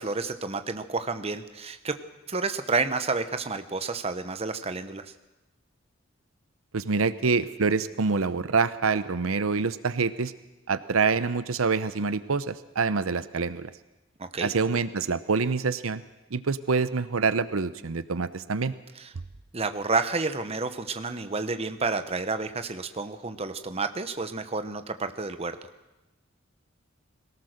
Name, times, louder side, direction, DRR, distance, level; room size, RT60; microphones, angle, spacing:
voice 1, 0.0-2.0 2.3-5.1 14.2-14.5 19.0-19.1 19.5-25.6, right 3 dB, 30° right, 9 dB, 0.9 m, -30 dB
voice 2, 6.7-10.3 10.7-13.7 14.4-16.0 16.3-18.7, right 4 dB, 90° right, 14 dB, 0.8 m, -26 dB
22.5 x 17.5 x 6.6 m, 1.0 s
head